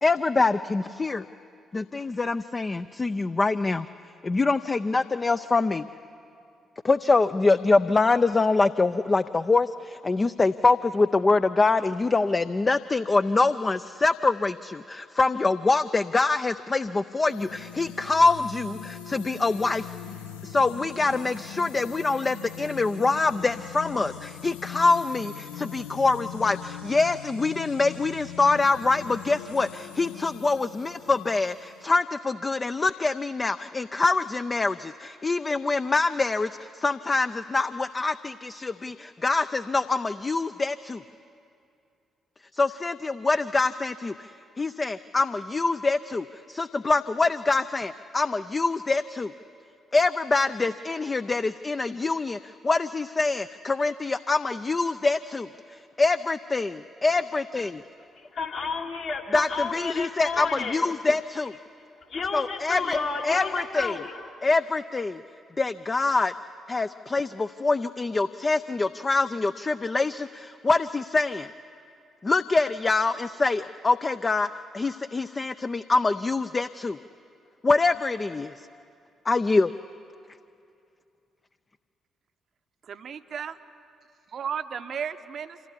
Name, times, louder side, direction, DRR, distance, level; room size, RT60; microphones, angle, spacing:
voice 1, 0.0-1.3 1.7-3.9 4.2-5.9 6.8-19.9 20.4-41.0 42.5-44.3 44.6-49.3 49.9-57.8 59.3-61.5 62.3-63.0 63.2-64.0 64.4-65.2 65.6-66.3 66.7-71.5 72.2-77.0 77.6-78.5 79.3-79.7, left 3 dB, 30° left, 10 dB, 0.5 m, -25 dB
sound 1, 17.3-32.0, left 9 dB, 80° left, 0.7 m, -41 dB
voice 2, 58.2-60.8 62.1-64.3, left 4 dB, 60° left, -1 dB, 2.4 m, -31 dB
voice 3, 82.9-83.6 84.3-85.7, right 7 dB, 50° right, 11 dB, 0.8 m, -34 dB
25.5 x 16.0 x 9.9 m, 2.5 s
figure-of-eight pair, 40°, 0 cm